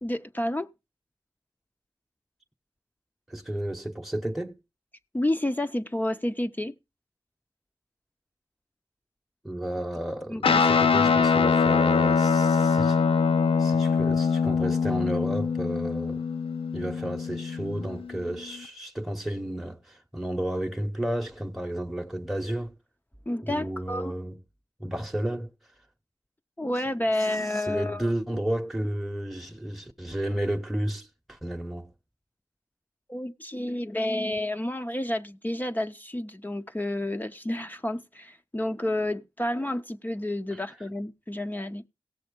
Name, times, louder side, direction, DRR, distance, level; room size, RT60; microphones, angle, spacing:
voice 1, 0.0-0.7 5.1-6.7 10.3-10.6 23.3-24.1 26.6-28.1 33.1-41.8, left 1 dB, 20° left, 0.6 m, -30 dB
voice 2, 3.3-4.6 9.4-13.0 13.6-16.2 16.7-22.7 23.4-24.4 24.8-25.5 27.3-31.9 40.5-40.6, right 1 dB, ahead, 0.9 m, -32 dB
Guitar, 10.4-18.1, left 5 dB, 85° left, 0.6 m, -23 dB
16.5 x 7.0 x 5.1 m
wide cardioid pair, 75°, 9 cm